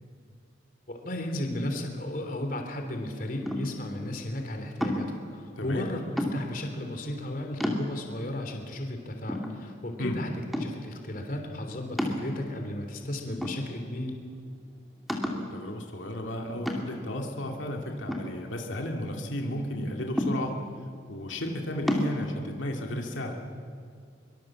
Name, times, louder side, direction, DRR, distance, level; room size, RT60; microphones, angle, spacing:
voice 1, 0.9-14.2, left 1 dB, 45° left, 4 dB, 3.1 m, -34 dB
sound 1, 3.4-3.9 4.8-5.2 6.2-6.7 7.2-7.3 7.6-8.2 8.8-8.9 9.3-10.0 10.5-10.9 12.0-12.7 13.4-14.1 14.4-14.5 15.1-15.5 16.7-17.1 18.1-19.0 20.2-20.8 21.9-22.1, left 1 dB, ahead, 2.5 m, -31 dB
voice 2, 5.6-5.9 10.0-10.2 15.2-20.5 21.1-23.3, left 1 dB, 90° left, 2 dB, 2.4 m, -33 dB
24.5 x 23.5 x 7.6 m, 2.3 s
head